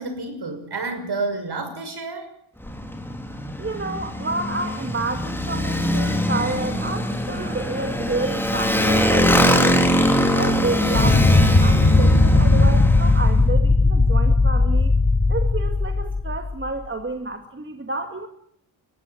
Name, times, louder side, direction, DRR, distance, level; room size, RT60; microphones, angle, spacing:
voice 1, 0.0-2.3, right 3 dB, 55° right, 8 dB, 6.1 m, -29 dB
Motorcycle, 2.6-13.3, equal, 5° left, 3.7 m, -22 dB
voice 2, 3.6-9.6 10.4-14.9 15.3-18.3, right 3 dB, 25° right, 6 dB, 2.2 m, -30 dB
sound 1, 10.9-16.7, left 2 dB, 30° left, 3.6 m, -17 dB
21.5 x 15.5 x 9.2 m, 0.67 s
cardioid pair, 100°, 47 cm